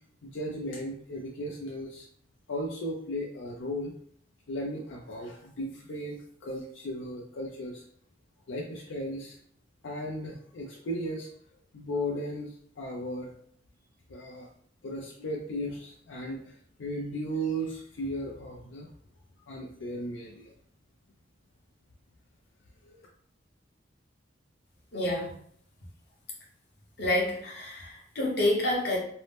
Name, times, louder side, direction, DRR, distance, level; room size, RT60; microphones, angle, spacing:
voice 1, 0.2-2.1 2.5-3.9 4.5-7.8 8.5-9.4 9.8-11.3 11.7-13.3 14.1-14.5 14.8-16.5 16.8-18.9 19.5-20.5 22.8-23.0, equal, 80° left, -2 dB, 0.5 m, -36 dB
voice 2, 24.9-25.3 27.0-29.0, left 1 dB, 60° left, -2 dB, 0.8 m, -28 dB
2.7 x 2.0 x 3.2 m, 0.62 s
head